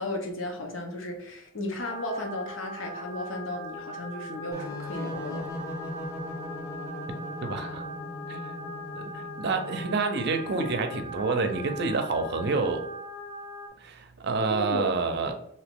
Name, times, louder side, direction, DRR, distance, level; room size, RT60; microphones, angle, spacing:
voice 1, 0.0-5.5 14.5-14.9, left 1 dB, 80° left, 2 dB, 0.8 m, -34 dB
sound 1, 1.8-13.7, equal, 35° left, 0.4 m, -40 dB
sound 2, 4.5-10.0, left 1 dB, 15° left, 0.8 m, -39 dB
voice 2, 7.4-7.8 8.3-8.4 8.9-12.9 13.8-15.4, right 3 dB, 55° right, 6 dB, 0.5 m, -28 dB
2.9 x 2.8 x 3.5 m, 0.72 s
head